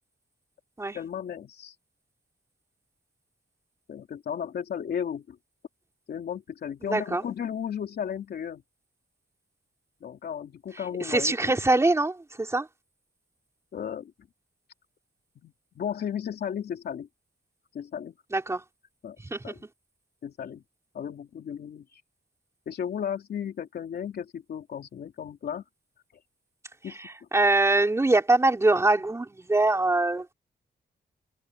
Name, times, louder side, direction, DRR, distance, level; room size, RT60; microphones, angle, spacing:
voice 1, 0.9-1.7 3.9-5.4 6.1-8.6 10.0-11.6 13.7-14.1 15.4-17.1 17.7-18.1 19.0-19.2 19.4-19.7 20.2-20.6 20.9-22.0 22.7-25.6 26.8-27.0, left 8 dB, 75° left, 2.9 m, -34 dB
voice 2, 6.9-7.2 11.0-12.7 18.3-18.6 19.2-19.5 27.3-30.3, right 2 dB, 15° right, 4.0 m, -23 dB
wide cardioid pair, 155°, 17 cm